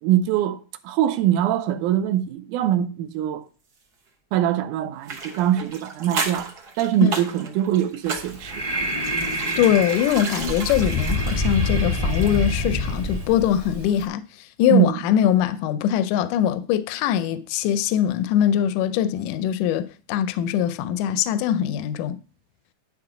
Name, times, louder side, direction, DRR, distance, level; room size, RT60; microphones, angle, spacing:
voice 1, 0.0-3.4 4.3-6.5 6.8-8.7 14.7-15.0, right 11 dB, 80° right, 2.1 m, -22 dB
sound 1, 5.0-12.6 12.9-13.0, right 4 dB, 60° right, 1.0 m, -34 dB
Breathing, 8.1-14.1, left 1 dB, 20° right, 0.9 m, -26 dB
voice 2, 9.6-22.2, left 10 dB, 85° left, 2.0 m, -22 dB
11.0 x 3.7 x 4.9 m
omnidirectional pair, 3.6 m